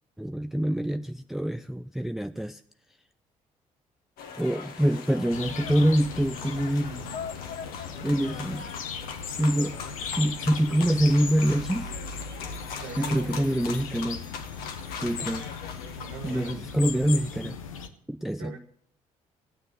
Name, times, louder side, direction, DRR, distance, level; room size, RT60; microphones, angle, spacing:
voice 1, 0.2-2.6 4.4-7.2 8.0-8.7 9.4-9.8 10.2-11.9 13.0-14.3 14.9-15.5 16.2-17.6 18.1-18.5, equal, ahead, 0.5 m, -25 dB
sound 1, 4.2-16.5, left 6 dB, 60° left, 1.5 m, -40 dB
sound 2, 5.3-17.9, left 6 dB, 80° left, 0.9 m, -38 dB
voice 2, 12.8-13.6 15.9-16.7 18.4-18.6, right 6 dB, 65° right, 1.2 m, -42 dB
16.5 x 9.3 x 6.5 m
figure-of-eight pair, 45°, 17 cm